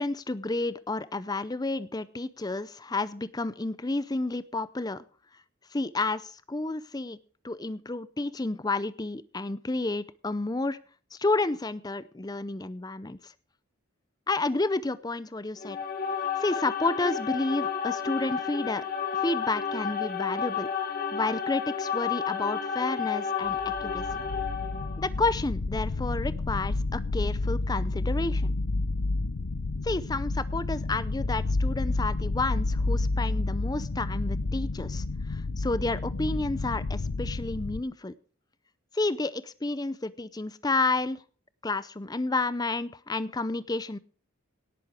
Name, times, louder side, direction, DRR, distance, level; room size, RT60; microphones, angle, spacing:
voice 1, 0.0-5.0 5.7-7.2 7.4-10.8 11.1-13.3 14.3-15.8 16.4-18.8 19.1-20.7 21.1-24.0 25.0-28.5 29.8-38.1 38.9-41.2 41.6-44.0, left 2 dB, 20° left, 16 dB, 0.5 m, -30 dB
sound 1, 15.6-25.0, left 7 dB, 45° left, 2.3 m, -31 dB
sound 2, 23.5-37.8, left 2 dB, 80° left, 0.8 m, -30 dB
17.5 x 7.9 x 5.0 m, 0.42 s
head